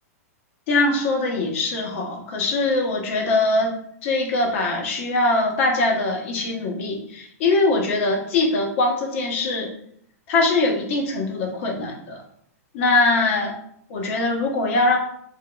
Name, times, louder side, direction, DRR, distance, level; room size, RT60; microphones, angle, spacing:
voice 1, 0.7-3.7 4.0-9.7 10.3-12.2 12.7-13.5 13.9-15.0, left 2 dB, 50° left, 1 dB, 0.9 m, -22 dB
3.5 x 2.8 x 2.2 m, 0.68 s
hypercardioid pair, 140°, 8 cm